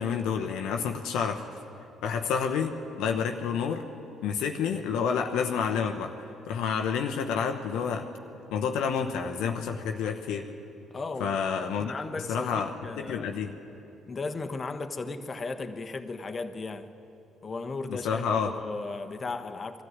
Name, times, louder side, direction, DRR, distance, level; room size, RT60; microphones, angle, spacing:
voice 1, 0.0-1.4 2.0-3.8 4.2-6.1 6.5-8.1 8.5-10.5 11.2-11.9 12.3-12.7 13.0-13.5 17.9-18.5, left 6 dB, 70° left, 4 dB, 1.0 m, -29 dB
voice 2, 10.9-11.4 11.8-13.3 14.1-16.9 17.4-19.8, left 3 dB, 35° left, 7 dB, 1.2 m, -36 dB
20.5 x 13.5 x 9.5 m, 2.9 s
hypercardioid pair, 50°, 0 cm